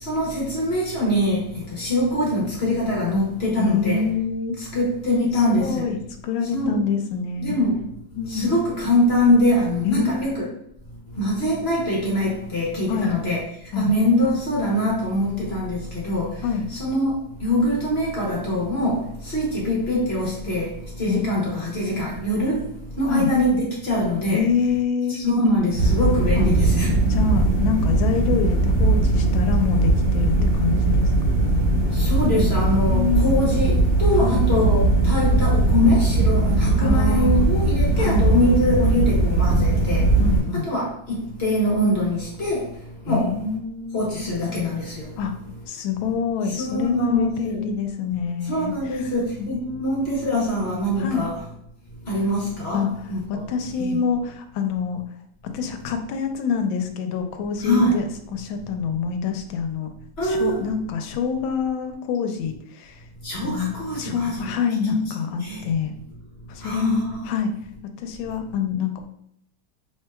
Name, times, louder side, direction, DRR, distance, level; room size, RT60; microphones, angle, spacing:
voice 1, 0.0-4.1 4.6-5.9 6.5-6.7 7.4-7.8 8.3-10.4 11.2-13.4 13.7-16.4 16.7-17.1 17.4-22.6 23.0-24.4 25.1-26.9 31.9-40.1 40.5-42.6 43.1-43.4 43.9-45.1 46.5-47.6 48.5-51.4 52.1-53.4 53.8-54.0 57.6-58.0 60.2-60.6 63.2-64.5 65.4-65.6 66.6-67.3, left 1 dB, 45° left, -4 dB, 0.9 m, -23 dB
voice 2, 3.6-4.6 5.6-7.6 8.2-8.6 9.8-10.4 12.9-13.1 13.7-13.9 16.4-16.7 21.1-21.4 23.1-23.3 24.3-25.2 26.3-26.4 27.1-31.1 32.9-33.3 34.2-34.4 36.8-37.5 38.0-38.3 40.2-40.7 43.1-44.0 45.2-45.3 45.7-49.0 49.4-50.2 51.0-51.2 52.7-52.9 53.3-55.0 55.4-58.0 58.3-59.9 60.2-63.0 63.4-65.9 66.5-67.5 68.0-69.1, left 6 dB, 90° left, 6 dB, 1.4 m, -26 dB
sound 1, 25.8-40.4, right 2 dB, 65° right, 1.7 m, -19 dB
4.5 x 3.1 x 2.3 m, 0.73 s
omnidirectional pair, 2.1 m